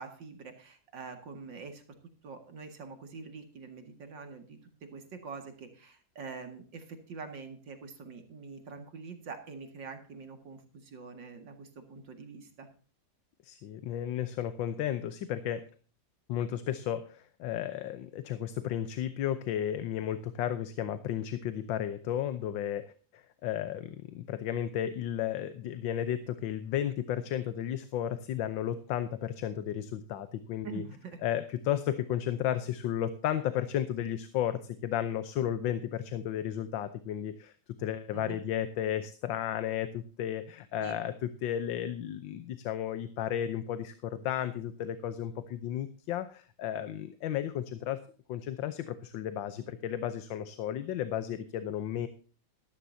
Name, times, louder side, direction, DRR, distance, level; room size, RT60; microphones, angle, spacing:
voice 1, 0.0-1.8 2.2-12.7 30.6-31.2 38.1-38.4 40.8-41.0, right 5 dB, 70° right, 6 dB, 2.7 m, -45 dB
voice 2, 13.4-15.6 16.3-22.9 23.1-30.8 31.2-37.5 37.8-48.0 48.3-52.1, left 10 dB, 80° left, 11 dB, 1.6 m, -33 dB
13.5 x 13.5 x 2.7 m, 0.40 s
omnidirectional pair, 2.1 m